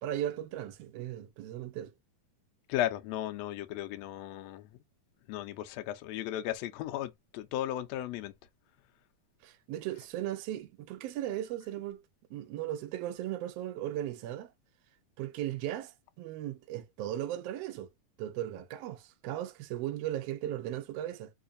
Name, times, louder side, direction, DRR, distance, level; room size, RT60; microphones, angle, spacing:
voice 1, 0.0-1.9 9.4-12.0 12.3-14.5 15.2-15.9 16.2-17.9 18.2-21.3, right 12 dB, 80° right, 1.4 m, -37 dB
voice 2, 2.7-4.7 5.3-8.3, left 13 dB, 80° left, 1.6 m, -35 dB
4.6 x 2.5 x 2.5 m
omnidirectional pair, 3.5 m